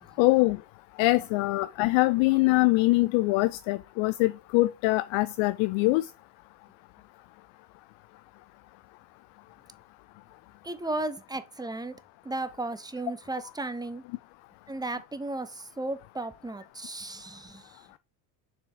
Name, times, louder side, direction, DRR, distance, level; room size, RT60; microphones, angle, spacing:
voice 1, 0.2-0.6 1.0-6.1, left 21 dB, 70° left, 0.5 m, -23 dB
voice 2, 10.6-11.9 12.2-14.0 14.7-17.8, right 2 dB, 10° right, 0.8 m, -35 dB
6.9 x 4.3 x 4.8 m
supercardioid pair, 95°, 48 cm